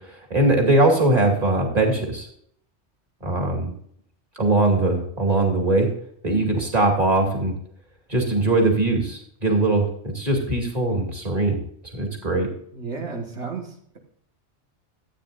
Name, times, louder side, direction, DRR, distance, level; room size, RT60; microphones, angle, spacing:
voice 1, 0.3-2.3 3.2-3.7 4.4-5.9 6.2-7.5 8.1-9.9 10.1-11.6 11.9-12.5, right 2 dB, 35° right, 1 dB, 2.5 m, -21 dB
voice 2, 12.7-14.0, right 4 dB, 75° right, 0 dB, 2.0 m, -33 dB
14.5 x 9.0 x 2.6 m, 0.64 s
omnidirectional pair, 1.2 m